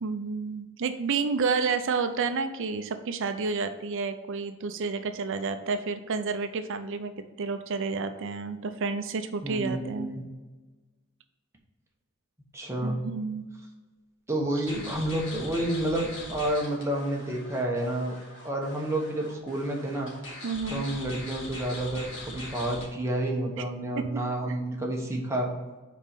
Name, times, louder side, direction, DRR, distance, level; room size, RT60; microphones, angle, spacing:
voice 1, 0.0-7.1 7.4-10.2 12.8-13.5 20.4-20.9 23.6-23.7 23.9-24.2 24.5-24.6, right 4 dB, 60° right, 9 dB, 0.5 m, -30 dB
voice 2, 9.4-10.2 12.5-13.0 14.3-18.1 18.4-20.1 20.7-25.5, right 1 dB, 15° right, -1 dB, 1.1 m, -30 dB
sound 1, 14.6-22.8, left 1 dB, 60° left, 2.0 m, -42 dB
5.3 x 4.3 x 5.1 m, 1.2 s
head